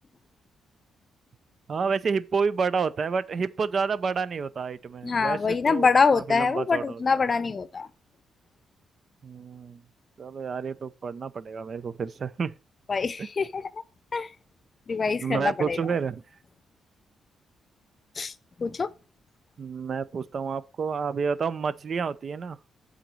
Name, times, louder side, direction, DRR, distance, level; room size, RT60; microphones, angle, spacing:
voice 1, 1.7-7.2 9.2-9.8 10.2-12.5 13.2-13.3 15.2-16.2 19.6-22.6, right 5 dB, 50° right, 0.5 m, -29 dB
voice 2, 5.0-7.9 12.9-13.8 14.1-14.3 14.9-15.8 18.2-18.3 18.6-18.9, left 4 dB, 40° left, 0.6 m, -25 dB
7.6 x 4.0 x 6.2 m
cardioid pair, 80°, 0 cm